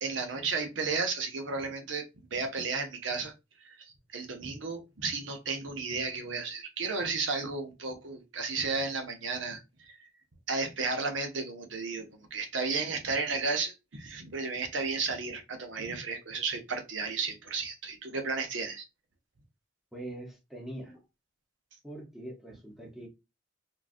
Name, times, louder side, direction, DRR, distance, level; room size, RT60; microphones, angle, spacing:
voice 1, 0.0-2.0 2.3-3.3 3.6-10.1 10.5-18.9, right 4 dB, 70° right, 0.8 m, -33 dB
voice 2, 19.9-21.0 21.8-23.1, right 1 dB, ahead, 0.8 m, -43 dB
3.8 x 2.4 x 2.5 m
head